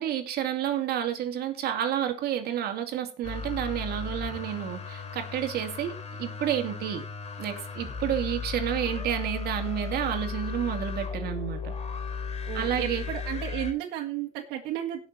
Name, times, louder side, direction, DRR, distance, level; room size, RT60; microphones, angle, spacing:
voice 1, 0.0-7.0 7.4-11.7 12.5-13.0, right 10 dB, 70° right, 5 dB, 2.7 m, -30 dB
sound 1, 3.2-13.7, left 5 dB, 40° left, 3.8 m, -35 dB
voice 2, 12.5-15.1, right 11 dB, 90° right, -2 dB, 1.9 m, -33 dB
18.0 x 6.3 x 4.2 m, 0.32 s
cardioid pair, 110°, 17 cm